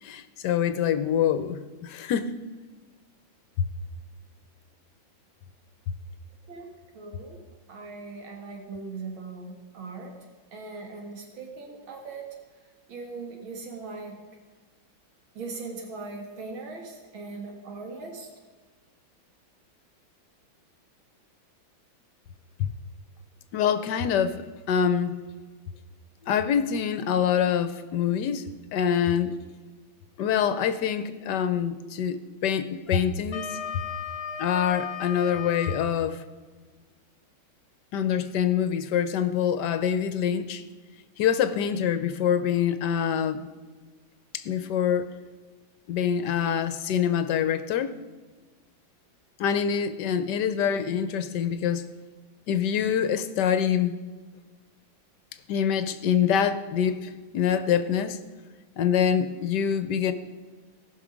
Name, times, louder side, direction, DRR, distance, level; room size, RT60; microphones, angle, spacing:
voice 1, 0.0-2.4 22.6-22.7 23.5-24.4 24.7-25.2 26.2-29.4 30.2-33.6 34.4-36.2 37.9-40.6 41.2-43.5 44.3-45.1 45.9-47.9 49.4-51.8 52.5-54.0 55.5-58.2 58.8-60.1, left 8 dB, 70° left, 12 dB, 1.1 m, -25 dB
voice 2, 6.9-7.4 7.7-10.1 10.5-12.2 12.9-14.2 15.4-18.3, right 3 dB, 80° right, 2 dB, 2.3 m, -39 dB
Wind instrument woodwind instrument, 32.9-35.9, left 8 dB, 50° left, 0.7 m, -35 dB
18.0 x 6.1 x 5.1 m, 1.3 s
omnidirectional pair, 2.2 m